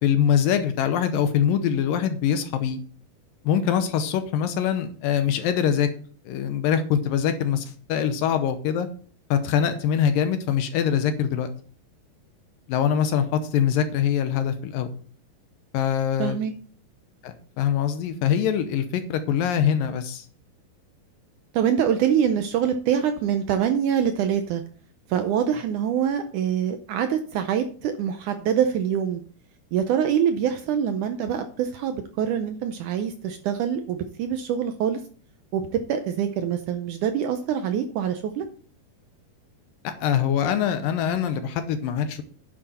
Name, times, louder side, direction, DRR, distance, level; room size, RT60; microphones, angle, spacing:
voice 1, 0.0-2.8 3.4-5.9 6.3-8.9 9.3-11.5 12.7-14.9 15.7-16.4 17.2-20.3 39.8-42.2, left 8 dB, 75° left, 9 dB, 2.3 m, -23 dB
voice 2, 16.2-16.5 21.5-24.6 25.1-29.2 29.7-35.0 35.5-38.5, right 8 dB, 80° right, 7 dB, 1.8 m, -25 dB
9.8 x 7.6 x 4.2 m, 0.44 s
omnidirectional pair, 4.4 m